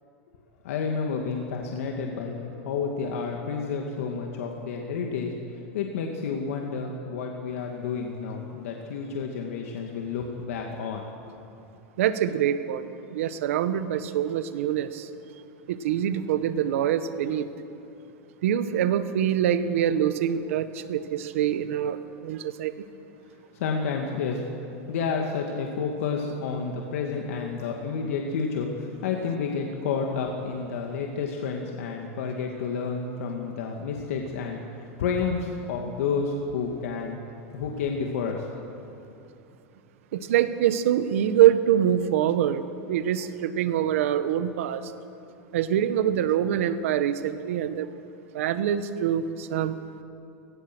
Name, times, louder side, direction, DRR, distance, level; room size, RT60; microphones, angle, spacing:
voice 1, 0.6-5.3 5.7-11.1 23.6-24.4 24.9-34.6 35.0-37.2 37.5-38.4, left 5 dB, 75° left, 1 dB, 2.3 m, -30 dB
voice 2, 12.0-15.1 15.7-17.5 18.4-22.0 22.2-22.7 40.1-44.9 45.5-47.9 48.3-49.8, right 10 dB, 70° right, 11 dB, 1.4 m, -25 dB
29.0 x 17.5 x 6.3 m, 2.7 s
supercardioid pair, 175°, 8 cm